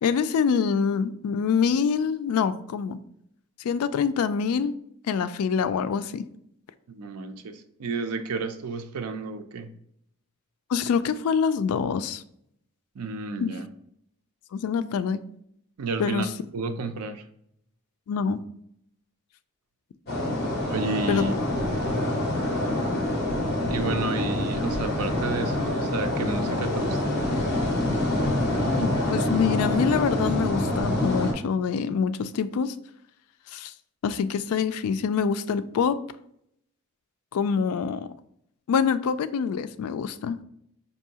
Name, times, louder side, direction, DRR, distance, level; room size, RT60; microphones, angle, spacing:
voice 1, 0.0-3.0 3.6-4.8 5.1-6.3 10.7-12.2 13.4-13.5 14.5-15.2 16.0-16.3 18.1-18.4 21.1-21.3 28.8-32.7 33.5-33.7 34.0-36.0 37.3-38.1 38.7-40.4, left 6 dB, 80° left, 13 dB, 0.3 m, -25 dB
voice 2, 6.9-9.7 12.9-13.7 15.8-16.3 16.5-17.2 20.7-21.7 23.7-27.3, right 4 dB, 90° right, 8 dB, 0.5 m, -32 dB
sound 1, 20.1-31.3, left 1 dB, 45° left, 0.9 m, -26 dB
4.5 x 2.7 x 2.8 m, 0.72 s
head